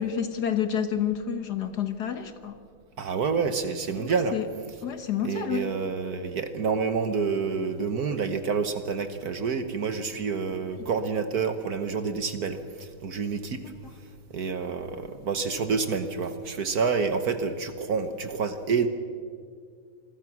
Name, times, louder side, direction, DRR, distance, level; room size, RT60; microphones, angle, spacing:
voice 1, 0.0-2.6 4.0-4.4 4.8-5.6, left 8 dB, 55° left, 9 dB, 1.5 m, -29 dB
voice 2, 3.0-4.3 5.2-13.6 14.3-18.9, right 5 dB, 50° right, 9 dB, 1.4 m, -28 dB
27.0 x 20.0 x 6.0 m, 2.2 s
omnidirectional pair, 2.3 m